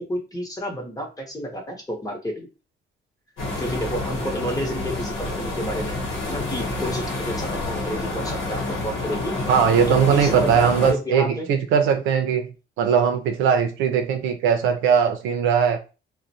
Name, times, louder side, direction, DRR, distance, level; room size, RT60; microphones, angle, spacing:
voice 1, 0.1-2.5 3.6-6.0 6.2-9.4 10.1-11.5, equal, 15° left, 0.9 m, -30 dB
sound 1, 3.4-10.9, left 2 dB, 85° left, 0.9 m, -28 dB
voice 2, 9.5-15.8, right 7 dB, 90° right, 0.5 m, -20 dB
2.4 x 2.2 x 2.7 m
cardioid pair, 90°, 20 cm